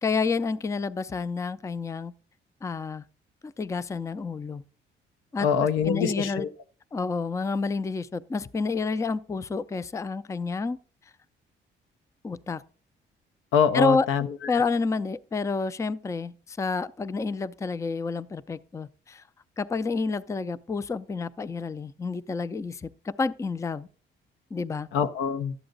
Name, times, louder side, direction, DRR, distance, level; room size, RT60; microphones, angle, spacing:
voice 1, 0.0-2.1 2.6-3.0 3.4-4.6 5.3-5.5 5.8-6.5 6.9-10.8 12.2-12.6 13.7-14.1 14.5-19.2 19.6-23.9 24.5-24.9, left 4 dB, 15° left, 0.4 m, -29 dB
voice 2, 5.4-6.5 13.5-14.3 24.9-25.5, left 7 dB, 85° left, 0.6 m, -24 dB
12.0 x 7.8 x 3.9 m
cardioid pair, 90°, 20 cm